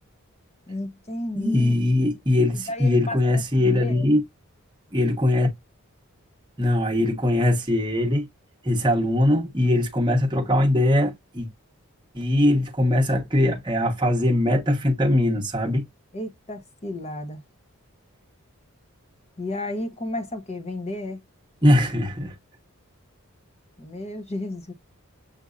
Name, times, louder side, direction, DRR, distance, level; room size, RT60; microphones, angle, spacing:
voice 1, 0.7-1.7 2.5-4.1 16.1-17.4 19.4-21.2 23.8-24.7, left 1 dB, 30° left, 0.9 m, -33 dB
voice 2, 1.3-4.2 4.9-5.5 6.6-8.3 8.6-11.5 12.1-15.8 21.6-22.3, left 1 dB, 20° right, 1.0 m, -21 dB
7.3 x 2.7 x 2.4 m
head